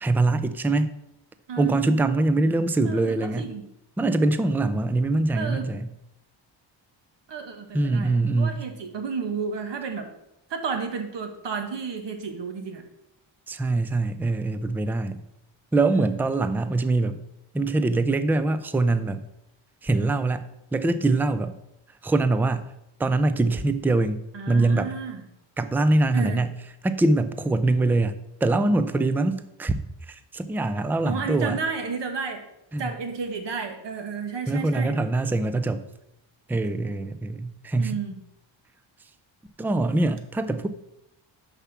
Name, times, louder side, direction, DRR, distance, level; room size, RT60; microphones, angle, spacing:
voice 1, 0.0-0.9 1.6-3.5 4.0-5.9 7.7-8.6 13.5-15.2 15.7-17.2 17.5-19.2 19.8-20.5 20.7-21.6 22.0-22.7 23.0-24.2 24.5-24.9 25.6-26.6 26.8-28.1 28.4-29.7 30.1-31.6 32.7-32.9 34.5-35.9 36.5-38.0 39.6-40.7, right 2 dB, 5° right, 11 dB, 0.3 m, -23 dB
voice 2, 1.5-1.9 2.9-3.6 5.3-5.7 7.3-10.1 10.5-12.8 15.9-16.1 24.3-25.2 26.1-26.4 31.0-32.5 32.8-35.0 37.8-38.2, right 5 dB, 60° right, 5 dB, 1.5 m, -32 dB
6.8 x 5.9 x 6.0 m, 0.83 s
wide cardioid pair, 130°, 47 cm